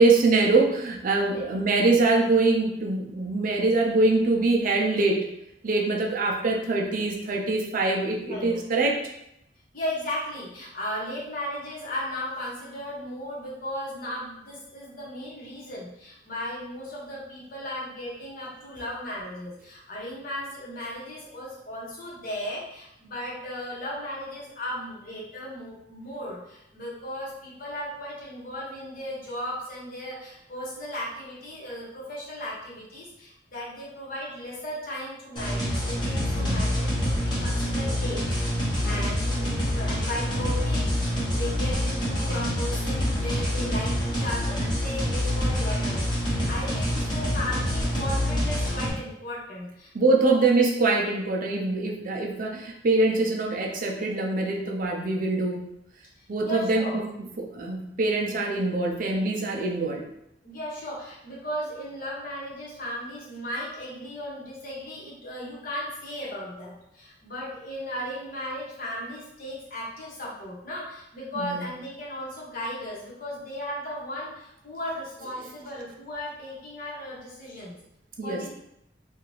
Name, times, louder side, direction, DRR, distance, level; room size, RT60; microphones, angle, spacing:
voice 1, 0.0-5.3 5.6-9.0 36.4-36.7 38.9-39.1 49.9-55.7 56.3-57.0 57.4-60.1 71.4-71.6 78.2-78.4, right 3 dB, 50° right, 0 dB, 0.5 m, -24 dB
voice 2, 1.2-1.6 8.2-8.6 9.7-38.2 38.5-50.4 56.2-57.0 60.4-77.8 78.2-78.5, left 1 dB, 50° left, -5 dB, 1.0 m, -36 dB
sound 1, 35.4-48.9, equal, 25° left, 0.9 m, -26 dB
2.6 x 2.4 x 3.1 m, 0.79 s
head